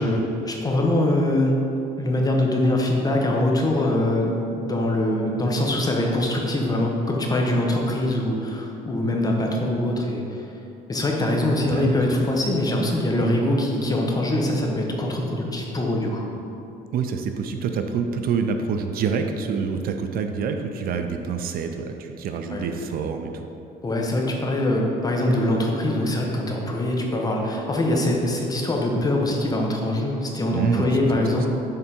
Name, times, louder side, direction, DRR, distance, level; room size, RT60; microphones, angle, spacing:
voice 1, 0.0-1.5 2.0-10.5 10.9-16.2 22.5-22.7 23.8-31.5, left 1 dB, 20° left, 0 dB, 0.9 m, -23 dB
voice 2, 11.7-12.2 16.9-23.5 30.5-31.3, right 6 dB, 60° right, 6 dB, 0.4 m, -27 dB
6.7 x 3.5 x 4.3 m, 2.8 s
cardioid pair, 110°, 17 cm